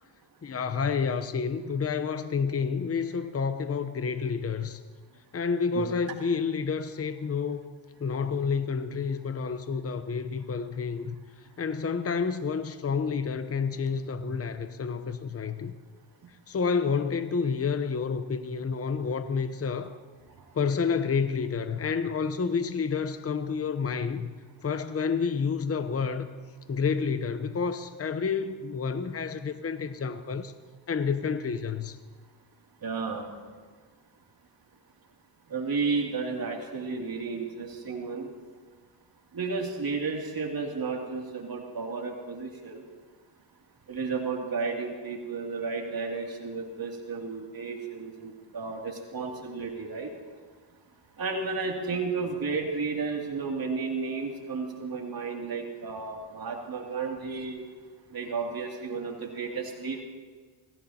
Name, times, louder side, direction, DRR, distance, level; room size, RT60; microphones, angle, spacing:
voice 1, 0.4-4.8 5.3-7.6 8.0-11.1 11.6-15.7 16.5-20.0 20.5-24.3 24.6-26.3 26.7-30.5 30.9-32.0, left 5 dB, 30° left, 10 dB, 0.9 m, -29 dB
voice 2, 32.8-33.3 35.5-38.3 39.3-42.8 43.9-50.1 51.2-57.6 58.1-60.0, right 4 dB, 50° right, 0 dB, 2.8 m, -32 dB
25.5 x 15.5 x 2.9 m, 1.5 s
supercardioid pair, 55°, 46 cm